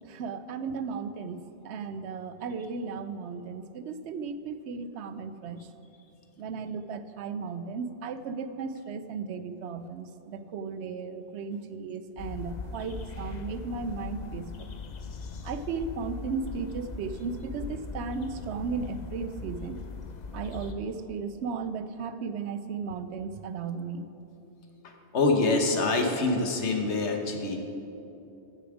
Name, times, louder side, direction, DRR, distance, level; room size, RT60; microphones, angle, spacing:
voice 1, 0.0-5.7 6.4-14.7 15.4-19.8 20.3-24.1, right 5 dB, 80° right, 11 dB, 0.9 m, -35 dB
sound 1, 12.2-20.7, left 4 dB, 45° left, 0.7 m, -40 dB
voice 2, 25.1-27.6, left 3 dB, 90° left, 3 dB, 1.4 m, -25 dB
14.0 x 7.0 x 4.9 m, 2.9 s
omnidirectional pair, 1.1 m